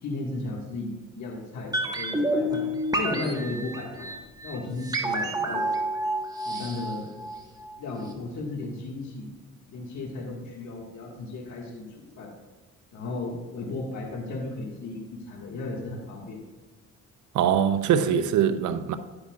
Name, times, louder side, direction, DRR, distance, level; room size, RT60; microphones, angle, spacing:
voice 1, 0.0-2.6 2.9-4.1 4.4-5.7 6.5-7.1 7.8-9.3 9.7-12.3 12.9-16.4, left 2 dB, 70° left, 1.8 m, -35 dB
sound 1, 1.7-7.8 8.0-8.1, right 1 dB, 10° right, 1.4 m, -29 dB
voice 2, 17.3-19.0, right 8 dB, 75° right, 0.7 m, -22 dB
10.5 x 9.9 x 2.4 m
cardioid pair, 90°, 30 cm